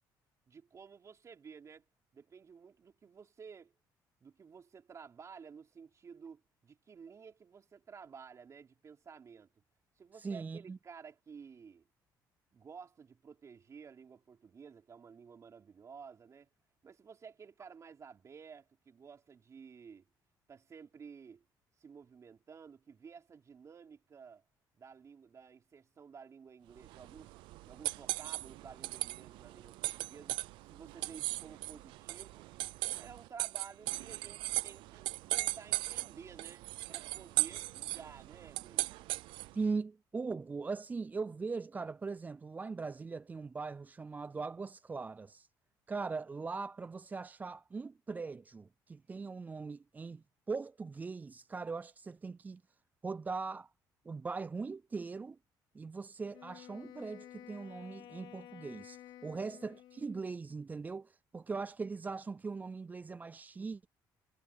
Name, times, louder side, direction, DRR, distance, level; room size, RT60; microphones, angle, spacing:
voice 1, 0.5-1.9 2.1-3.7 4.2-9.5 10.0-11.8 12.5-16.5 16.8-20.0 20.5-21.4 21.8-24.4 24.7-27.4 27.7-32.5 32.9-35.1 35.3-39.1 59.3-59.5, right 6 dB, 40° right, 3.6 m, -53 dB
voice 2, 10.2-10.8 39.5-45.5 45.9-52.6 53.0-53.7 54.1-55.4 55.7-63.9, right 4 dB, 20° right, 0.3 m, -40 dB
sound 1, 26.8-39.6, right 18 dB, 85° right, 0.5 m, -38 dB
Wind instrument woodwind instrument, 56.3-60.5, left 12 dB, 75° left, 3.6 m, -53 dB
cardioid pair, 95°, 8 cm